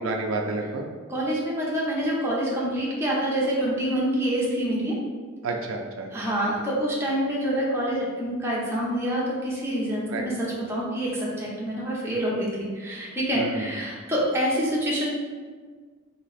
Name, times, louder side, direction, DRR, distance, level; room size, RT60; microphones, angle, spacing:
voice 1, 0.0-0.9 5.4-6.1 10.1-10.3 13.3-14.0, right 3 dB, 75° right, 2 dB, 0.4 m, -30 dB
voice 2, 1.1-5.0 6.1-15.1, equal, 10° right, -6 dB, 0.8 m, -26 dB
3.1 x 2.8 x 4.1 m, 1.5 s
head